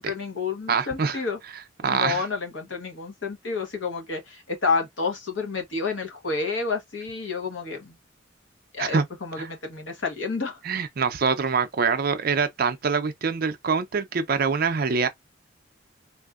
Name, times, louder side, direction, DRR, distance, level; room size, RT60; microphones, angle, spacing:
voice 1, 0.0-1.4 1.8-7.9 8.7-10.6, left 4 dB, 70° left, 1.1 m, -30 dB
voice 2, 0.7-1.2 1.8-2.3 8.8-9.1 9.4-9.5 10.6-15.1, right 5 dB, 50° right, 0.5 m, -24 dB
3.4 x 2.6 x 2.4 m
head